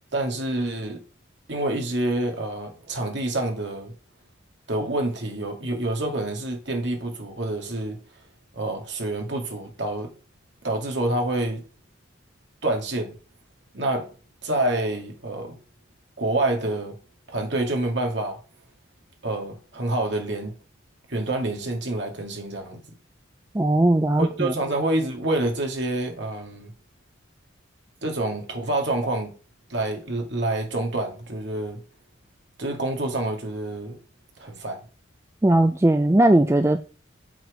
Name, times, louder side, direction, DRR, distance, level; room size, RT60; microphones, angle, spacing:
voice 1, 0.1-1.0 1.5-3.9 4.7-8.0 8.5-10.1 10.6-11.6 12.6-13.2 13.7-14.1 14.4-15.6 16.2-16.9 17.3-18.4 19.2-20.6 21.1-22.8 24.2-26.7 28.0-29.3 29.7-31.8 32.6-34.0 34.4-34.9, right 2 dB, 60° right, 2.2 m, -27 dB
voice 2, 23.5-24.5 35.4-36.8, right 1 dB, 15° right, 0.3 m, -18 dB
7.3 x 6.1 x 5.0 m
head